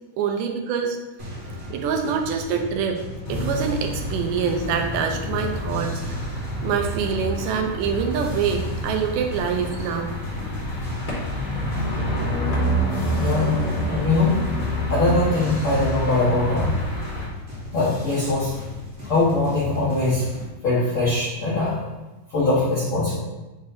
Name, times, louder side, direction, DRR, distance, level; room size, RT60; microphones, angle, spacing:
voice 1, 0.2-1.0 1.7-3.0 3.3-5.9 6.6-10.1, right 6 dB, 75° right, 3 dB, 2.2 m, -25 dB
sound 1, 1.2-20.5, left 2 dB, 55° right, 0.7 m, -36 dB
sound 2, 3.2-17.3, equal, 90° left, 0.4 m, -28 dB
voice 2, 13.2-13.6 13.9-14.4 14.9-16.8 17.7-18.5 19.0-20.3 20.6-21.8 22.3-23.2, left 2 dB, 60° left, -9 dB, 1.4 m, -21 dB
9.6 x 3.9 x 2.8 m, 1.1 s
omnidirectional pair, 3.9 m